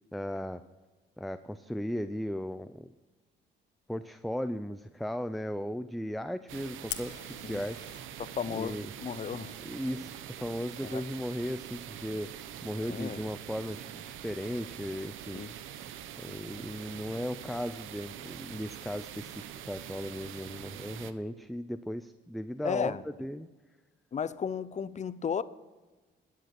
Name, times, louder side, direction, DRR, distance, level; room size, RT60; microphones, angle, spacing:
voice 1, 0.1-0.6 1.2-2.9 3.9-7.9 8.5-8.9 9.6-15.6 16.2-23.5, equal, ahead, 0.5 m, -36 dB
sound 1, 6.5-21.1, right 10 dB, 90° right, 0.8 m, -44 dB
Fire, 6.9-8.0, left 9 dB, 60° left, 1.1 m, -41 dB
voice 2, 8.2-9.6 10.9-11.0 12.9-13.2 15.3-15.5 20.5-20.6 22.6-23.0 24.1-25.4, left 7 dB, 35° left, 0.7 m, -34 dB
13.5 x 9.5 x 5.9 m
cardioid pair, 90°, 20 cm